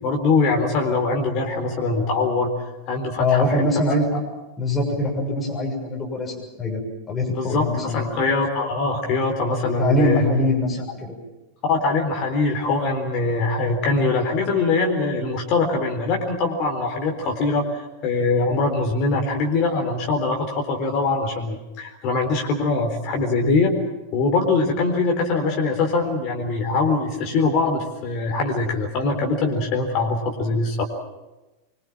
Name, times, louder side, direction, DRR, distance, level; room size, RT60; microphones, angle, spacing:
voice 1, 0.0-3.5 7.3-10.2 11.7-23.7 24.1-30.8, left 3 dB, 40° left, 2 dB, 4.0 m, -22 dB
voice 2, 3.1-4.2 4.6-6.8 7.1-8.1 9.8-11.2, left 1 dB, 15° left, -1 dB, 6.8 m, -23 dB
25.0 x 23.5 x 7.5 m, 1.1 s
figure-of-eight pair, 90°, 0 cm